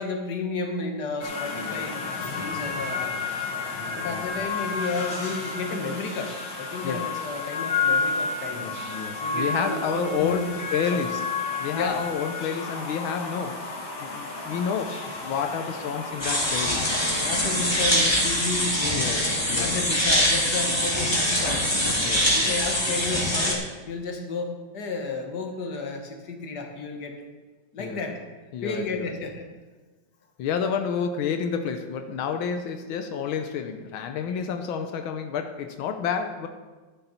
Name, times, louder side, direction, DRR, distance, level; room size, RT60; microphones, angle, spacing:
voice 1, 0.0-2.0 2.4-3.2 4.0-8.7 9.2-10.6 10.9-11.1 11.7-12.1 17.2-19.1 19.6-21.7 22.3-27.2 27.7-28.2 28.6-29.5, left 3 dB, 55° left, 3 dB, 2.0 m, -32 dB
sound 1, 1.2-18.5, left 4 dB, 75° left, 2.6 m, -32 dB
voice 2, 1.6-1.9 3.8-4.5 6.8-7.0 8.5-11.3 11.6-16.9 18.8-19.2 19.5-19.8 22.0-22.6 27.8-28.0 28.5-29.1 30.4-36.5, left 6 dB, 90° left, 6 dB, 1.6 m, -30 dB
sound 2, 16.2-23.5, equal, 15° left, 2.1 m, -24 dB
13.5 x 9.9 x 4.3 m, 1.3 s
omnidirectional pair, 2.1 m